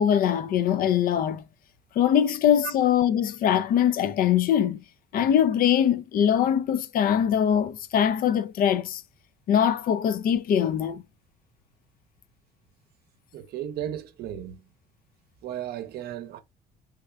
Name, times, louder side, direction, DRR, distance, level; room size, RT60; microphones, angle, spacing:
voice 1, 0.0-1.4 2.0-4.8 5.1-9.0 9.5-11.0, left 9 dB, 60° left, 0.4 m, -22 dB
voice 2, 13.3-14.6 15.4-16.4, right 11 dB, 70° right, 0.7 m, -35 dB
3.6 x 3.2 x 2.3 m
cardioid pair, 110°, 17 cm